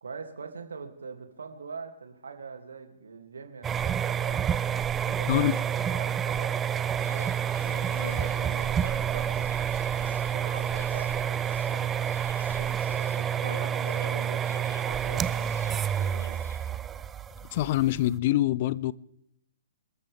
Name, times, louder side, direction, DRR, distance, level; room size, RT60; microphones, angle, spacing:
voice 1, 0.0-4.5 5.0-7.4 7.6-8.0 8.4-11.9 12.5-16.4, right 5 dB, 70° right, 2.7 m, -43 dB
sound 1, 3.6-18.1, right 9 dB, 15° right, 0.5 m, -29 dB
Insect, 7.0-16.8, left 4 dB, 70° left, 1.4 m, -48 dB
voice 2, 17.5-18.9, left 15 dB, 40° left, 0.6 m, -25 dB
28.0 x 13.5 x 3.6 m
figure-of-eight pair, 120°, 0 cm